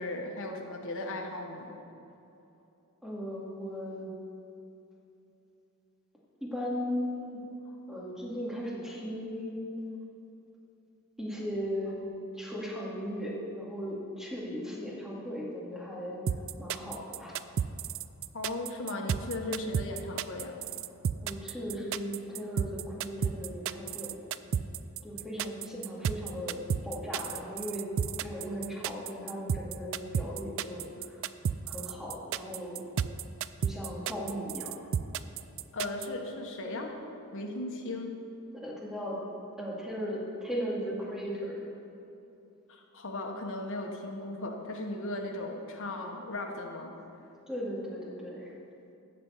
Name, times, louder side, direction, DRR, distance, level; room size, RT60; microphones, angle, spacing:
voice 1, 0.0-1.7 18.3-20.6 35.7-36.9 37.3-38.1 42.7-46.9, left 2 dB, 60° left, 2 dB, 1.4 m, -37 dB
voice 2, 3.0-4.1 6.4-7.4 7.9-9.7 11.2-16.2 16.6-17.4 21.2-24.2 25.0-27.9 28.2-31.2 31.7-32.8 33.6-34.7 38.5-39.2 39.6-41.7 47.5-48.5, equal, ahead, -6 dB, 2.2 m, -37 dB
sound 1, 16.3-36.1, right 8 dB, 60° right, 0.3 m, -32 dB
13.0 x 4.5 x 8.2 m, 2.9 s
head